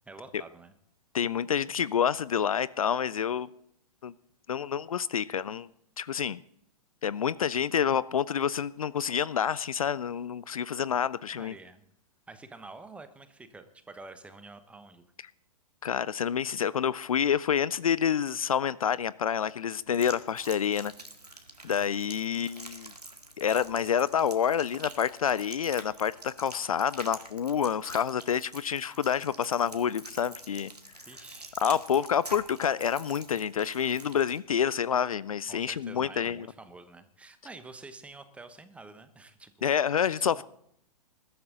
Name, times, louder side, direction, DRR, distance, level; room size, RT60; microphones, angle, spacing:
voice 1, 0.1-0.7 11.3-11.8 12.3-15.1 21.7-22.0 31.0-31.6 35.5-39.7 40.2-40.4, right 3 dB, 5° right, 11 dB, 1.1 m, -48 dB
voice 2, 1.1-3.5 4.0-4.1 4.5-5.7 6.0-6.4 7.0-11.6 15.8-20.9 21.6-22.9 23.4-30.7 31.6-36.5 39.6-40.4, left 8 dB, 60° left, 20 dB, 0.4 m, -28 dB
sound 1, 19.7-34.4, right 2 dB, 85° right, 1.9 m, -47 dB
20.5 x 12.5 x 3.9 m, 0.71 s
figure-of-eight pair, 110°, 20 cm